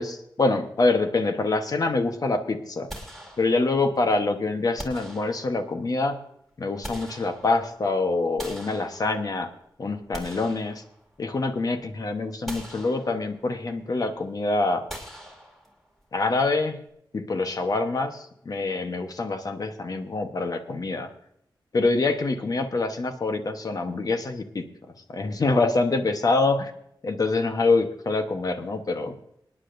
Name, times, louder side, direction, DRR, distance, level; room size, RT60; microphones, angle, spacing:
voice 1, 0.0-2.9 3.4-6.1 6.6-9.5 9.8-10.8 11.2-14.8 16.1-16.7 17.3-18.1 18.4-21.1 21.7-24.6 25.1-26.7 27.0-29.2, left 3 dB, 50° left, 6 dB, 1.0 m, -25 dB
sound 1, 2.9-3.9 4.8-5.8 6.5-7.8 8.4-9.5 9.9-11.4 11.8-11.9 12.5-13.5 14.9-16.0, equal, 5° left, 2.4 m, -42 dB
26.0 x 9.8 x 2.6 m, 0.76 s
wide cardioid pair, 115°, 8 cm